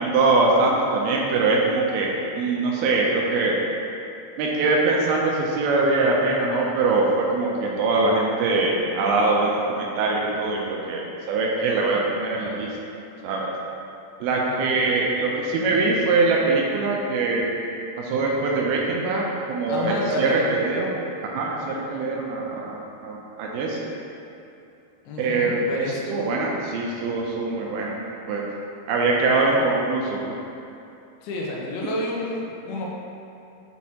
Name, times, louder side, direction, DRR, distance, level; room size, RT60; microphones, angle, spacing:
voice 1, 0.0-3.6 4.4-12.7 13.2-13.5 14.2-17.5 18.0-20.9 21.2-23.9 25.2-28.5 28.9-30.4, right 3 dB, 80° right, -2 dB, 2.3 m, -23 dB
voice 2, 14.5-14.8 19.7-20.5 25.1-26.2 29.5-29.6 31.2-32.9, left 1 dB, 80° left, -3 dB, 2.6 m, -30 dB
6.1 x 5.8 x 2.8 m, 2.7 s
omnidirectional pair, 4.7 m